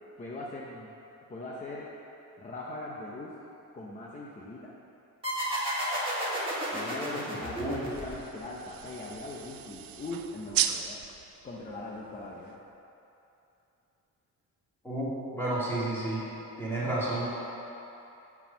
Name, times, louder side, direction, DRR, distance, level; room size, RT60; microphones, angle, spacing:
voice 1, 0.2-0.9 1.3-1.9 2.4-3.4 3.7-4.7 6.7-11.0 11.4-12.5, left 2 dB, 20° left, -4 dB, 0.6 m, -40 dB
sound 1, 5.2-8.5, equal, 15° right, 1.6 m, -32 dB
voice 2, 7.4-7.8 14.8-16.2 16.6-17.3, right 1 dB, 5° left, -9 dB, 2.0 m, -31 dB
sound 2, 7.9-12.7, right 10 dB, 70° right, 0.5 m, -36 dB
7.7 x 4.7 x 6.8 m, 2.9 s
wide cardioid pair, 170°, 35 cm